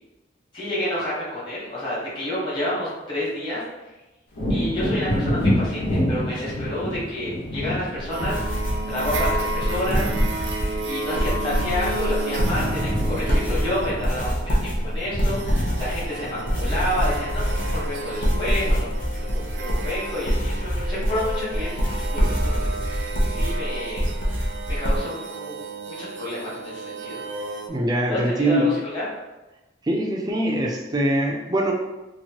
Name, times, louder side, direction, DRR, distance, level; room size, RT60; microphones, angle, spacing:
voice 1, 0.5-3.6 4.5-10.1 10.7-24.1 24.7-27.2 28.1-29.0, left 1 dB, 25° left, -9 dB, 1.2 m, -30 dB
Wind / Thunder, 4.3-11.9 12.2-19.4 19.8-20.0, equal, 80° left, 1.3 m, -29 dB
sound 1, 8.0-25.0, equal, 50° left, 0.7 m, -25 dB
sound 2, 8.1-27.7, right 3 dB, 85° right, 0.4 m, -33 dB
voice 2, 27.7-28.7 29.9-31.7, right 1 dB, 20° right, 0 dB, 0.4 m, -23 dB
2.9 x 2.6 x 2.8 m, 1.0 s
head